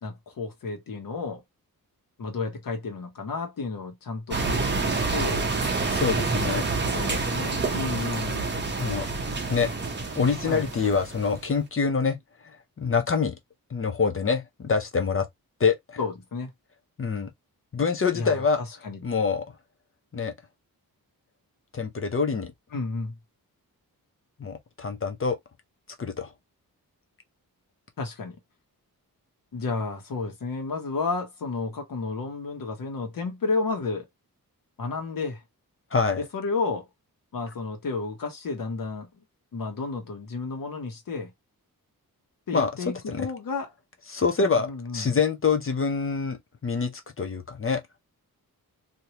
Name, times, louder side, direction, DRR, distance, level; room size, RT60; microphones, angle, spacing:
voice 1, 0.0-1.4 2.2-5.4 6.9-8.6 10.4-10.7 16.0-16.5 18.1-19.0 22.7-23.1 28.0-28.4 29.5-34.1 34.8-35.4 36.2-36.9 37.3-39.1 39.5-41.3 42.5-43.7 44.4-45.1, left 4 dB, 65° left, 1.3 m, -32 dB
sound 1, 4.3-11.4, right 3 dB, 30° right, 0.8 m, -28 dB
voice 2, 5.9-6.7 8.8-9.1 9.5-9.7 10.2-12.2 12.8-13.4 13.7-15.3 15.6-16.0 17.0-17.3 17.7-18.6 19.0-19.4 20.1-20.3 21.7-22.5 24.4-25.4 26.0-26.3 35.9-36.2 42.5-42.7 43.1-43.3 44.1-47.8, left 5 dB, 35° left, 0.6 m, -25 dB
3.2 x 2.8 x 2.8 m
wide cardioid pair, 165°, 36 cm